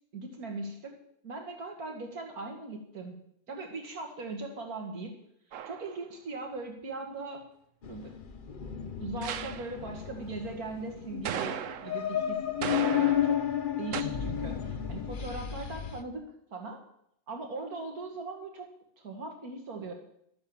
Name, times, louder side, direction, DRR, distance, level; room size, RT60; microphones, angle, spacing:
voice 1, 0.1-0.9 1.2-3.2 3.5-5.1 5.6-7.4 7.9-8.1 9.0-13.4 13.8-16.8 17.3-18.7 19.0-19.9, right 3 dB, 85° right, 3 dB, 2.5 m, -39 dB
sound 1, 5.5-6.0 9.2-9.8 11.2-12.1 12.6-13.5 13.9-14.0, right 9 dB, 65° right, 1.0 m, -36 dB
sound 2, 7.8-16.0, left 9 dB, 45° left, 0.8 m, -32 dB
12.5 x 8.7 x 7.2 m, 0.71 s
omnidirectional pair, 1.5 m